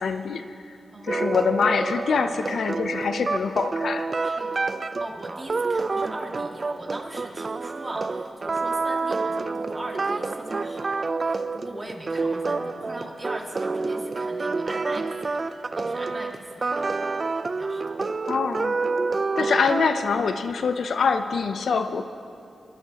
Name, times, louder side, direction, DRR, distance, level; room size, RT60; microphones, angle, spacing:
voice 1, 0.0-0.8 1.0-4.1 18.3-18.8 19.4-22.1, left 5 dB, 75° left, 9 dB, 0.5 m, -25 dB
voice 2, 0.9-1.6 4.2-4.7 5.0-15.4 15.8-17.0 17.5-17.9, right 1 dB, 25° right, 0 dB, 1.9 m, -39 dB
sound 1, 1.1-20.2, right 3 dB, 45° right, 0.4 m, -28 dB
22.5 x 12.5 x 2.9 m, 2.6 s
cardioid pair, 65°, 0 cm